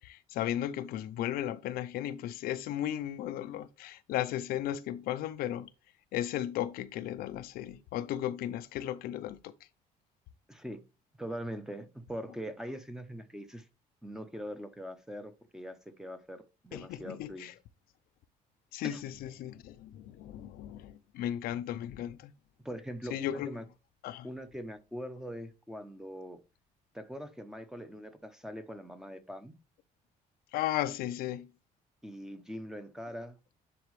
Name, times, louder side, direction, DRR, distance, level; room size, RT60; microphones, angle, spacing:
voice 1, 0.0-5.7 6.1-9.5 16.7-17.5 18.7-22.3 23.1-23.5 24.0-24.3 30.5-31.5, left 12 dB, 85° left, 0.6 m, -35 dB
voice 2, 10.5-10.8 11.2-13.7 14.0-17.5 18.8-19.0 22.6-23.6 24.2-26.4 26.9-29.6 32.0-33.4, equal, 5° right, 0.8 m, -42 dB
9.9 x 4.2 x 3.3 m
cardioid pair, 145°, 15 cm